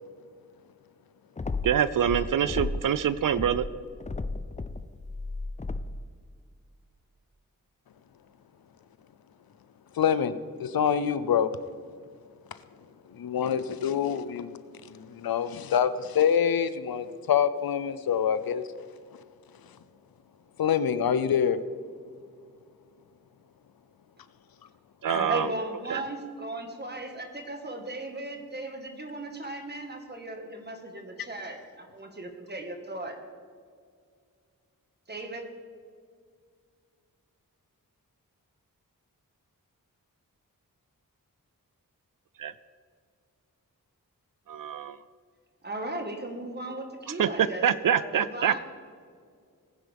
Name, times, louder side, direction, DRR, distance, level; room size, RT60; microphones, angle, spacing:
sound 1, 1.4-3.0 3.3-6.1, left 3 dB, 20° left, 0.5 m, -34 dB
voice 1, 1.6-3.7 25.0-25.5 25.9-26.0 42.4-42.5 44.5-45.0 47.2-48.6, right 9 dB, 65° right, 15 dB, 0.5 m, -25 dB
voice 2, 10.0-11.5 13.2-14.5 14.9-18.6 20.6-21.6 25.1-25.3, left 8 dB, 85° left, 13 dB, 0.7 m, -26 dB
voice 3, 25.1-33.2 35.1-35.4 45.6-48.6, right 1 dB, 30° right, 4 dB, 1.6 m, -37 dB
19.5 x 9.8 x 3.5 m, 2.1 s
wide cardioid pair, 110°, 35 cm